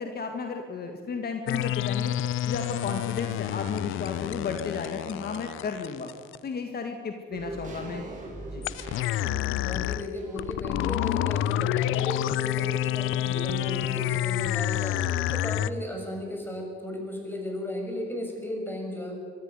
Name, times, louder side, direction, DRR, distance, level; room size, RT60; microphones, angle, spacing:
voice 1, 0.0-2.1 2.5-6.1 6.4-8.1 8.5-8.7, left 5 dB, 50° left, 5 dB, 1.9 m, -34 dB
sound 1, 1.5-6.4 8.6-15.7, left 13 dB, 90° left, 0.6 m, -28 dB
sound 2, 7.3-11.8 12.1-12.2, right 2 dB, 40° right, 7.6 m, -42 dB
voice 2, 9.6-15.0 15.3-19.2, left 1 dB, 10° left, 2 dB, 6.6 m, -35 dB
23.5 x 13.5 x 9.7 m, 2.1 s
cardioid pair, 90°, 20 cm